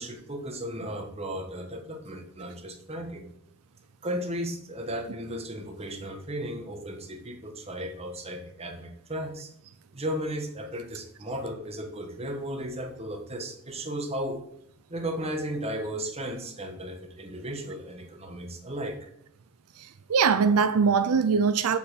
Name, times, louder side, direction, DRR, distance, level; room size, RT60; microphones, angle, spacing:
voice 1, 0.0-3.3 4.0-9.5 9.9-14.4 14.9-19.0, equal, 30° right, 1.4 m, -35 dB
voice 2, 19.8-21.8, right 5 dB, 85° right, 0.5 m, -22 dB
7.1 x 5.5 x 6.5 m
head